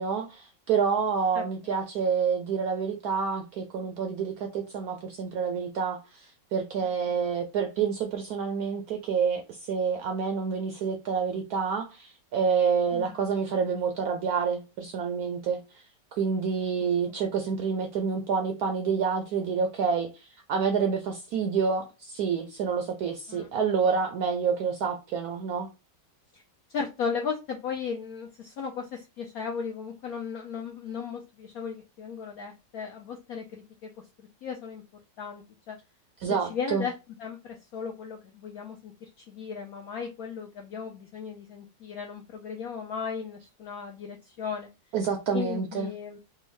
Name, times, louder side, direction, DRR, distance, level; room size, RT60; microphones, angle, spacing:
voice 1, 0.0-15.8 16.2-25.7 36.2-36.8 44.9-45.9, right 6 dB, 75° right, 0.8 m, -28 dB
voice 2, 12.9-13.2 17.1-17.2 23.3-23.5 26.3-26.4 26.7-33.9 34.2-34.8 35.2-35.8 36.4-36.9 37.2-44.7 45.3-46.2, left 6 dB, 80° left, 0.8 m, -36 dB
3.5 x 2.1 x 3.1 m
omnidirectional pair, 2.1 m